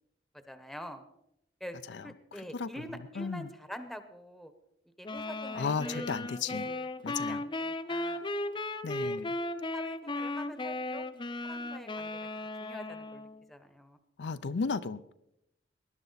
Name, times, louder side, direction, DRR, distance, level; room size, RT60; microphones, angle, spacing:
voice 1, 0.5-1.0 1.6-1.8 2.0-4.5 5.0-6.1 6.4-8.2 9.0-9.2 9.7-11.0 11.4-12.2 12.6-14.0, equal, ahead, 9 dB, 1.0 m, -46 dB
voice 2, 3.2-3.5 5.5-6.7 7.0-7.4 8.8-9.3 14.2-15.1, left 5 dB, 70° left, 12 dB, 0.5 m, -34 dB
sound 1, 5.0-13.4, left 2 dB, 30° left, 0.7 m, -36 dB
19.5 x 11.0 x 4.0 m, 0.80 s
head